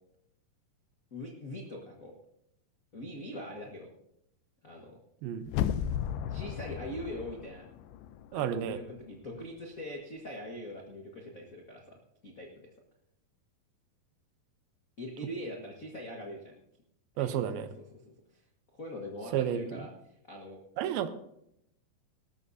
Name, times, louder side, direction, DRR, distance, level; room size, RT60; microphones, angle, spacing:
voice 1, 1.1-2.1 2.9-3.9 4.6-5.0 6.3-7.6 8.3-12.0 12.2-12.7 15.0-16.5 17.1-17.5 18.3-18.4 18.7-20.6, left 1 dB, 70° left, 0 dB, 0.8 m, -42 dB
voice 2, 5.2-5.5 8.3-8.8 17.2-17.7 19.3-19.8 20.8-21.1, right 9 dB, 80° right, 11 dB, 2.7 m, -31 dB
sound 1, 5.5-8.4 8.7-8.8, left 10 dB, 90° left, 2.6 m, -34 dB
19.5 x 13.0 x 2.8 m, 0.76 s
omnidirectional pair, 4.3 m